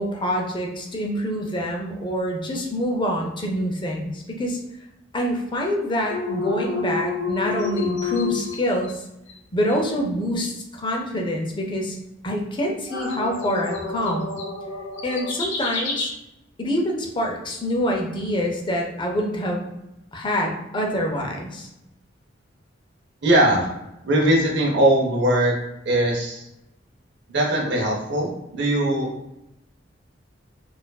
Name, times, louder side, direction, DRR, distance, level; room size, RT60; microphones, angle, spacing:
voice 1, 0.0-4.6 5.1-9.0 9.5-12.0 12.2-14.3 15.0-16.1 16.6-19.7 20.1-21.7, equal, 25° left, 1 dB, 0.6 m, -26 dB
sound 1, 6.1-8.9 9.3-9.4 9.7-9.8 12.9-16.0, left 4 dB, 90° left, 1.0 m, -29 dB
voice 2, 23.2-23.7 24.0-25.5 25.8-26.5 27.3-29.1, right 1 dB, 65° right, -1 dB, 0.7 m, -20 dB
4.3 x 2.5 x 2.2 m, 0.88 s
head